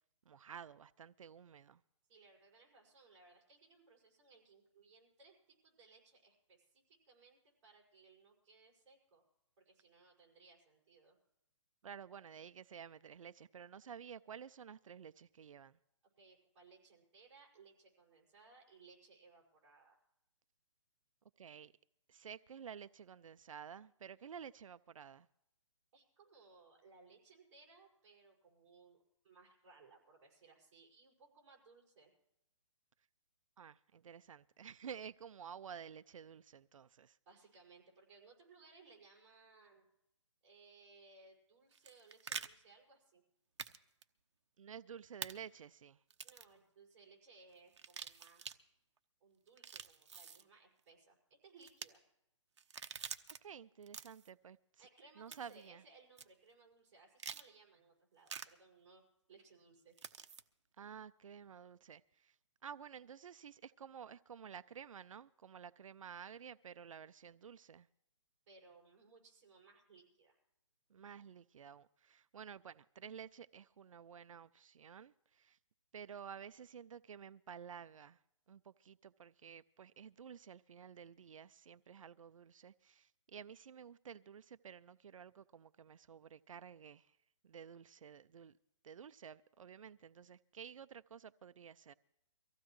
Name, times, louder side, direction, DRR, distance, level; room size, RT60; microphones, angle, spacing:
voice 1, 0.3-1.8 11.8-15.8 21.4-21.7 22.1-25.3 33.6-37.2 44.6-46.0 53.3-54.9 55.2-55.8 60.8-67.9 70.9-75.6 75.9-78.2 78.5-87.2 87.4-88.6 88.8-91.9, right 7 dB, 85° right, 0.5 m, -52 dB
voice 2, 2.1-9.2 9.7-11.2 16.2-20.0 25.9-32.1 37.3-39.9 40.4-43.2 46.2-48.5 49.2-51.2 51.4-52.0 54.8-59.0 59.3-59.9 68.5-70.4, right 4 dB, 20° right, 5.3 m, -63 dB
sound 1, 41.7-42.5 43.6-43.8 44.0-44.1 45.2-45.3 46.1-46.5 47.7-48.6 49.5-50.4 51.6-51.9 52.6-53.4 53.8-54.3 55.3-55.6 56.2-56.3 57.2-57.5 58.3-58.5 60.0-60.4, right 6 dB, 60° right, 0.9 m, -46 dB
24.0 x 15.5 x 3.1 m
hypercardioid pair, 175°, 17 cm